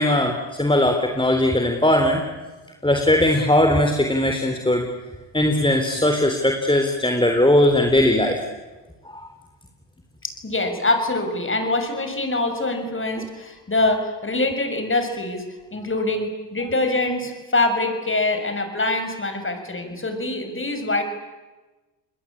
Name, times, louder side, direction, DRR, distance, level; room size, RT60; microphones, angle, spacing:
voice 1, 0.0-2.2 2.8-4.9 5.3-8.4 9.1-9.2, left 1 dB, 10° left, 4 dB, 3.7 m, -19 dB
voice 2, 10.2-15.4 15.7-21.0, left 2 dB, 25° left, 7 dB, 6.5 m, -24 dB
29.5 x 20.5 x 8.7 m, 1.2 s
supercardioid pair, 55°, 45 cm